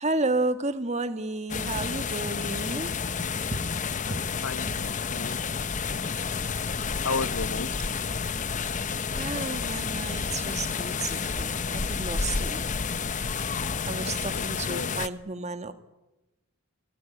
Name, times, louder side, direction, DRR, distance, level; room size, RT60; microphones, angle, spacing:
voice 1, 0.0-2.9 9.2-12.6 13.8-15.7, right 2 dB, 30° right, 10 dB, 1.7 m, -32 dB
sound 1, 1.5-15.1, left 5 dB, 35° left, 0.8 m, -30 dB
voice 2, 4.1-5.4 6.0-6.1 6.5-6.6 7.0-7.9 9.6-9.7 14.3-15.0, left 4 dB, 60° left, 16 dB, 1.0 m, -34 dB
27.5 x 18.5 x 9.5 m, 1.0 s
head